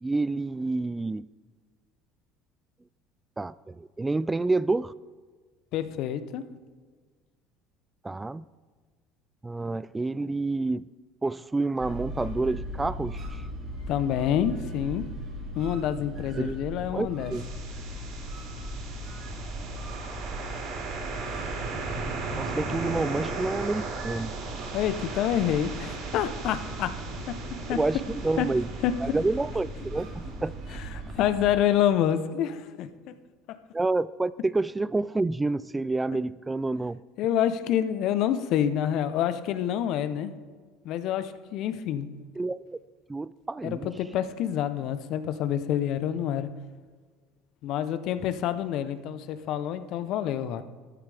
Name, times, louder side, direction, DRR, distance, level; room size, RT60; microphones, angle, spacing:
voice 1, 0.0-1.3 3.4-4.9 8.0-8.4 9.4-10.9 11.2-13.4 16.4-16.6 16.9-17.4 22.4-24.3 27.7-28.7 29.0-30.5 33.7-37.0 42.4-42.8 43.1-43.9, right 3 dB, 15° right, 19 dB, 0.3 m, -28 dB
voice 2, 5.7-6.4 13.9-15.0 15.6-17.3 24.7-26.9 27.3-27.4 27.7-27.8 28.4-28.5 28.8-28.9 31.1-33.1 33.5-33.6 37.2-40.3 40.8-42.1 43.6-46.5 47.6-50.6, left 10 dB, 60° left, 12 dB, 0.8 m, -27 dB
sound 1, 11.8-31.5, right 1 dB, 50° right, 3.9 m, -38 dB
sound 2, 17.3-31.2, right 3 dB, 65° right, 3.8 m, -37 dB
13.5 x 11.5 x 3.5 m, 1.5 s
hypercardioid pair, 80°, 0 cm